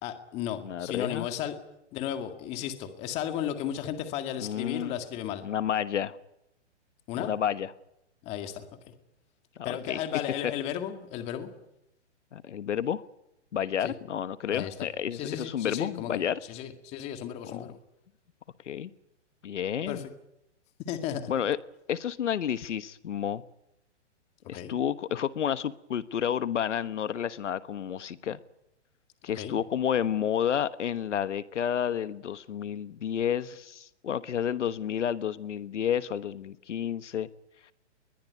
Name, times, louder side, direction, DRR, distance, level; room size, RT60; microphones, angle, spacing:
voice 1, 0.0-1.5 1.9-5.4 7.1-7.3 8.2-8.6 9.6-11.5 13.8-13.9 14.5-14.7 15.1-16.2 16.5-17.8 19.9-20.0 20.9-21.3 24.5-24.7 29.4-29.6, left 10 dB, 15° left, 8 dB, 2.0 m, -34 dB
voice 2, 0.6-1.3 4.4-5.0 5.4-6.2 7.2-7.7 9.6-10.0 10.4-10.5 12.3-13.0 13.5-16.4 17.4-17.7 18.6-18.9 19.4-20.1 21.3-21.6 21.9-23.4 24.5-28.4 29.2-37.3 37.6-37.7, left 9 dB, 75° left, 14 dB, 1.3 m, -30 dB
22.0 x 21.5 x 9.5 m, 0.83 s
hypercardioid pair, 170°, 36 cm